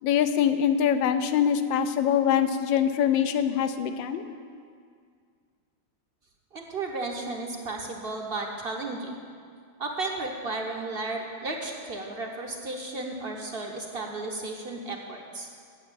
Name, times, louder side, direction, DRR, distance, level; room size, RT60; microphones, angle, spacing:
voice 1, 0.0-4.2, left 8 dB, 75° left, 10 dB, 1.4 m, -24 dB
voice 2, 6.5-9.2 9.8-15.5, right 2 dB, 45° right, 1 dB, 0.8 m, -34 dB
8.9 x 7.6 x 8.8 m, 2.2 s
omnidirectional pair, 2.1 m